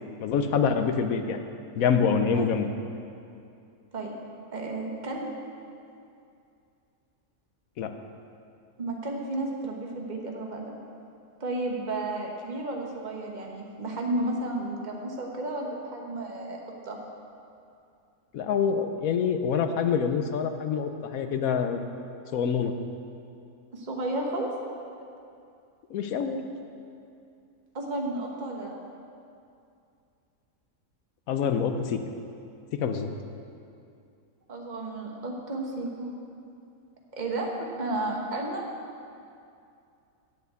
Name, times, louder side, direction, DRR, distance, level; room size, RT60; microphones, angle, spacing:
voice 1, 0.2-1.4 1.8-2.7 7.8-7.9 18.3-21.8 22.3-22.7 25.9-26.5 31.3-32.0 32.7-33.1, left 6 dB, 75° left, 7 dB, 1.1 m, -26 dB
voice 2, 4.5-5.3 8.8-10.7 11.4-17.0 23.7-24.5 27.7-28.7 34.5-36.1 37.1-38.7, right 2 dB, 35° right, 0 dB, 1.2 m, -32 dB
7.8 x 7.2 x 8.1 m, 2.5 s
omnidirectional pair, 1.6 m